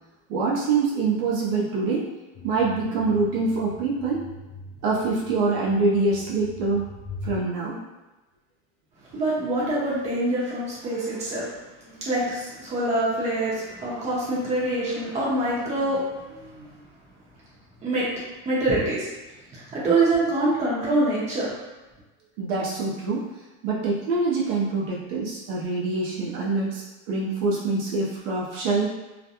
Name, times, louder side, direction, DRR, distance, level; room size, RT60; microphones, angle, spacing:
voice 1, 0.3-2.1 2.4-4.2 4.8-6.9 7.2-7.8 22.4-23.2 23.6-28.9, right 3 dB, 60° right, -4 dB, 0.7 m, -25 dB
sound 1, 2.3-7.4, left 2 dB, 35° left, 0.4 m, -41 dB
voice 2, 9.1-11.5 11.8-16.7 17.8-18.1 18.4-19.1 19.5-21.5, right 2 dB, 20° right, -7 dB, 0.8 m, -25 dB
2.4 x 2.1 x 2.8 m, 1.1 s
supercardioid pair, 145°, 33 cm